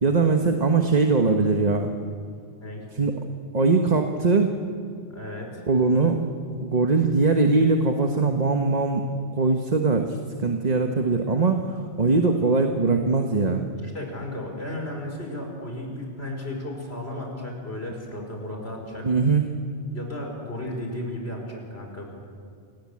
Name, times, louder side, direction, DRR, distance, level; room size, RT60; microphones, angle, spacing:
voice 1, 0.0-1.9 2.9-3.2 3.5-4.6 5.7-6.2 6.6-9.0 9.4-13.6 19.0-19.4, right 3 dB, 40° right, 4 dB, 1.4 m, -21 dB
voice 2, 5.1-5.7 13.8-19.1 19.9-22.2, left 1 dB, 70° left, 1 dB, 5.3 m, -34 dB
27.5 x 18.5 x 8.6 m, 2.2 s
omnidirectional pair, 1.1 m